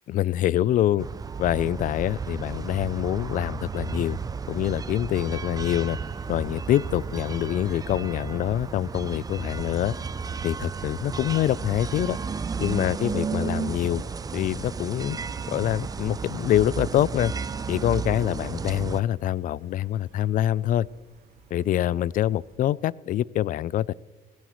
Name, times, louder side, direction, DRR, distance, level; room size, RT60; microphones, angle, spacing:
voice 1, 0.1-1.1 1.4-4.2 4.5-6.0 6.3-10.0 10.4-12.2 12.6-14.0 14.3-15.2 15.5-17.3 17.7-20.9 21.5-23.9, left 12 dB, 55° left, 23 dB, 0.4 m, -25 dB
sound 1, 1.0-19.0, right 5 dB, 20° right, 0.5 m, -33 dB
Gull seagull, 5.1-22.6, right 5 dB, 70° right, 4.1 m, -53 dB
19.0 x 16.0 x 3.1 m, 1.2 s
cardioid pair, 110°, 17 cm